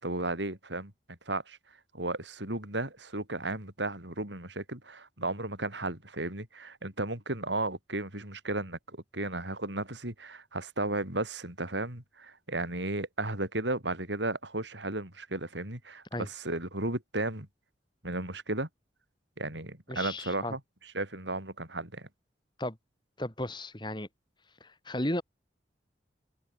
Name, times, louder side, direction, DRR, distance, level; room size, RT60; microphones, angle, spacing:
voice 1, 0.0-0.9 1.3-1.6 1.9-17.5 18.0-18.7 19.4-20.6 20.9-22.1, right 2 dB, 80° right, 6.5 m, -34 dB
voice 2, 19.9-20.5 22.6-22.8 23.2-24.1 24.6-25.2, left 1 dB, 25° left, 5.2 m, -34 dB
head